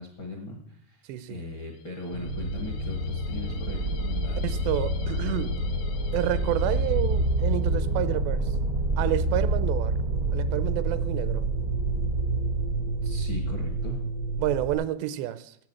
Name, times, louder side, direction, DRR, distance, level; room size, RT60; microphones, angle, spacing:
voice 1, 0.0-4.6 13.0-14.0, left 2 dB, 60° left, 1.2 m, -39 dB
voice 2, 1.1-1.4 4.4-5.6 6.1-8.5 9.0-10.0 10.3-11.5 14.4-15.6, right 13 dB, 85° right, 2.7 m, -29 dB
sound 1, 1.5-7.9, left 3 dB, 80° left, 3.2 m, -48 dB
sound 2, 2.1-14.7, right 2 dB, 65° right, 1.0 m, -27 dB
10.5 x 8.1 x 8.2 m
omnidirectional pair, 5.0 m